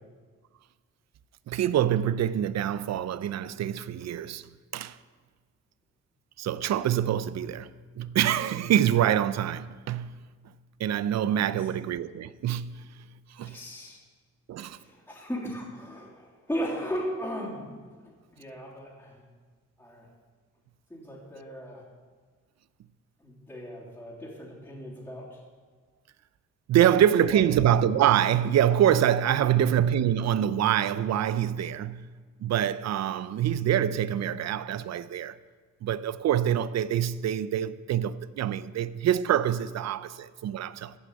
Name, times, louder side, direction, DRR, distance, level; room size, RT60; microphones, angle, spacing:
voice 1, 1.5-5.0 6.4-7.7 8.0-10.2 10.8-12.9 13.3-13.6 14.5-14.8 26.7-32.1 32.4-35.4 35.8-41.0, right 10 dB, 60° right, 0.6 m, -25 dB
voice 2, 13.4-14.0 14.6-17.6 17.9-19.2 19.8-20.1 20.9-21.8 23.2-25.4 26.8-26.9 27.3-27.5 29.4-29.6, equal, 5° left, 3.2 m, -37 dB
15.0 x 6.3 x 8.7 m
cardioid pair, 145°, 31 cm